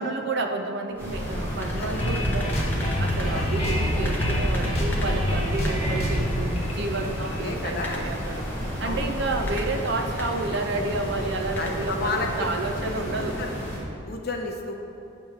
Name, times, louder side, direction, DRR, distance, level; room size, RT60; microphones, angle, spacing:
voice 1, 0.0-2.6 3.0-8.4 8.8-13.4, right 3 dB, 55° right, 4 dB, 0.5 m, -30 dB
sound 1, 0.9-13.9, equal, 10° left, 0.6 m, -35 dB
sound 2, 1.0-13.8, equal, 10° right, 1.4 m, -34 dB
sound 3, 2.0-7.8, equal, 30° left, 1.0 m, -26 dB
voice 2, 3.3-3.6 7.2-8.1 8.8-9.1 11.6-12.3 12.8-13.5 14.1-14.7, left 3 dB, 50° left, 2 dB, 0.7 m, -32 dB
8.4 x 3.1 x 6.4 m, 2.6 s
head